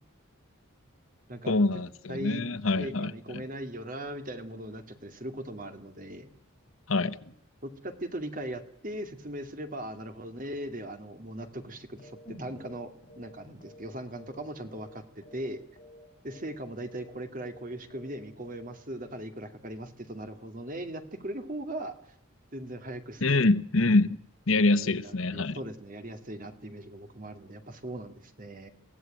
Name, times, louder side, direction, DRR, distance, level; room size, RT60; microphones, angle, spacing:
voice 1, 1.5-3.1 6.9-7.3 23.2-24.2 24.5-25.6, left 2 dB, 70° left, 1.2 m, -25 dB
voice 2, 2.1-2.4 2.8-6.3 7.6-15.6 16.2-21.9 22.5-23.6 24.8-28.7, right 1 dB, 40° right, 2.4 m, -39 dB
sound 1, 12.0-12.3 12.5-12.8 13.1-14.4 14.7-15.0 15.2-15.5 15.8-16.0 16.3-16.6 16.8-17.1 17.4-17.6 17.9-18.2 18.4-18.7, left 1 dB, 40° left, 4.5 m, -52 dB
sound 2, 12.3-16.2 16.5-16.6, equal, 5° left, 8.0 m, -54 dB
24.0 x 16.5 x 9.1 m
head